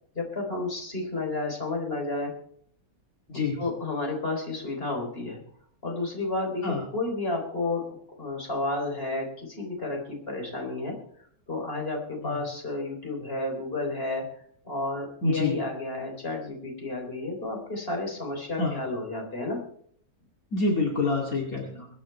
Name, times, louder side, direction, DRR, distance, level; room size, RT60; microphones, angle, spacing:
voice 1, 0.2-2.3 3.3-5.4 5.8-7.8 8.2-11.0 11.5-14.2 14.6-19.6, left 2 dB, 40° left, 1 dB, 3.9 m, -31 dB
voice 2, 15.2-15.5 18.6-18.8 20.5-21.9, left 3 dB, 65° left, -1 dB, 2.9 m, -27 dB
22.5 x 9.3 x 4.4 m, 0.62 s
omnidirectional pair, 1.6 m